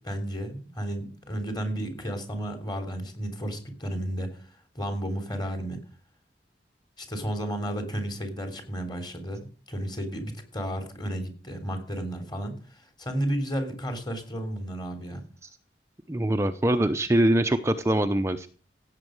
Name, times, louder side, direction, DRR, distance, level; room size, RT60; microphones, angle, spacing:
voice 1, 0.0-4.4 4.7-5.8 7.0-15.2, right 1 dB, 25° left, 7 dB, 3.4 m, -33 dB
voice 2, 16.1-18.5, right 1 dB, 15° right, 7 dB, 0.7 m, -23 dB
16.0 x 8.3 x 6.4 m, 0.40 s
head